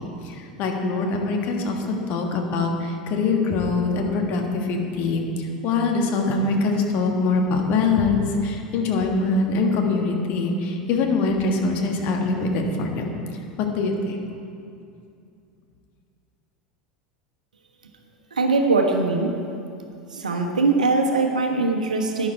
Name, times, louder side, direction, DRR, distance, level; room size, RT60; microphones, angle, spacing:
voice 1, 0.2-13.0 13.6-14.2, left 3 dB, 45° left, 2 dB, 1.6 m, -23 dB
voice 2, 18.3-19.4 20.1-22.3, right 3 dB, 75° right, 3 dB, 1.2 m, -21 dB
12.0 x 10.5 x 4.5 m, 2.5 s
figure-of-eight pair, 75°, 4 cm